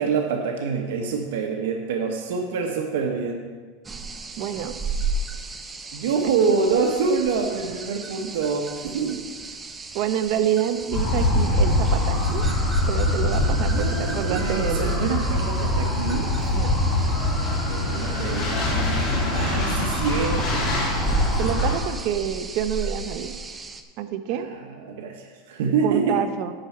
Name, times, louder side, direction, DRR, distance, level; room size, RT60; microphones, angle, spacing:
voice 1, 0.0-3.4 5.9-9.2 13.7-16.3 17.4-20.9 24.3-26.2, right 5 dB, 80° right, 2 dB, 1.1 m, -26 dB
sound 1, 3.8-23.8, right 3 dB, 15° right, 0.6 m, -35 dB
voice 2, 4.4-4.7 9.9-12.4 12.9-15.0 16.5-16.8 21.4-23.4 24.0-24.5 25.8-26.5, right 10 dB, 50° right, 9 dB, 0.7 m, -27 dB
sound 2, 10.9-21.7, left 1 dB, 30° left, 2.7 m, -23 dB
10.5 x 4.5 x 7.2 m, 1.5 s
supercardioid pair, 150°, 0 cm